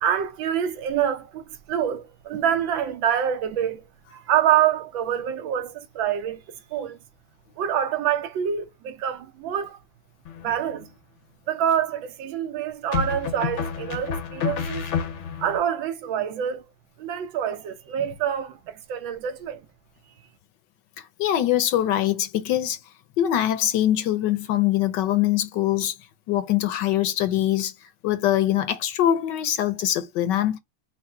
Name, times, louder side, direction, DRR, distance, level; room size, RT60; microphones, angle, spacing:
voice 1, 0.0-3.8 4.1-6.4 6.7-7.0 7.6-9.8 10.4-10.9 11.5-14.8 15.4-16.6 17.0-19.6, right 9 dB, 80° right, 1.5 m, -26 dB
sound 1, 10.2-10.8 12.9-15.6, left 6 dB, 55° left, 0.8 m, -29 dB
voice 2, 21.0-22.8 23.2-26.0 26.3-27.7 28.0-30.6, left 12 dB, 75° left, 1.2 m, -23 dB
4.6 x 2.1 x 4.3 m
omnidirectional pair, 2.1 m